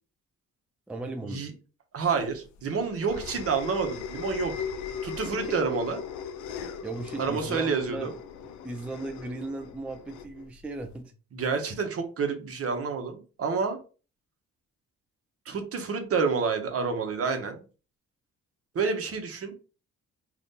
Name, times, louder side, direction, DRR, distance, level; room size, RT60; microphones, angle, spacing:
voice 1, 0.9-1.5 5.3-5.6 6.6-8.1 8.4-11.1, right 2 dB, 5° right, 0.3 m, -37 dB
voice 2, 1.9-4.5 5.0-6.0 7.2-8.1 11.3-13.8 15.5-17.6 18.7-19.5, right 5 dB, 50° right, 0.9 m, -28 dB
sound 1, 2.2-11.0, left 7 dB, 75° left, 0.5 m, -38 dB
2.7 x 2.5 x 3.6 m
cardioid pair, 90°, 30 cm